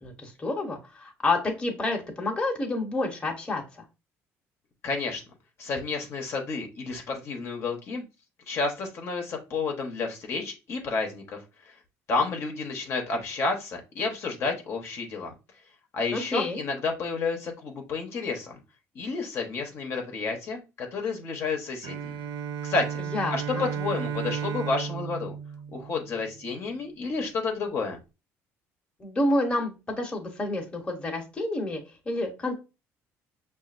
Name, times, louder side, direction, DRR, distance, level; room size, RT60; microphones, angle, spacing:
voice 1, 0.0-3.8 16.1-16.6 23.1-23.7 29.0-32.6, left 2 dB, 15° left, 1 dB, 1.0 m, -29 dB
voice 2, 4.8-5.2 5.6-8.0 8.5-11.4 11.6-11.7 12.1-15.3 15.9-18.6 18.9-22.1 22.6-23.0 23.3-25.3 25.7-28.0, left 4 dB, 50° left, 2 dB, 0.9 m, -30 dB
Bowed string instrument, 21.8-26.5, right 7 dB, 85° right, 0.4 m, -34 dB
6.0 x 2.5 x 2.5 m, 0.28 s
cardioid pair, 135°, 6 cm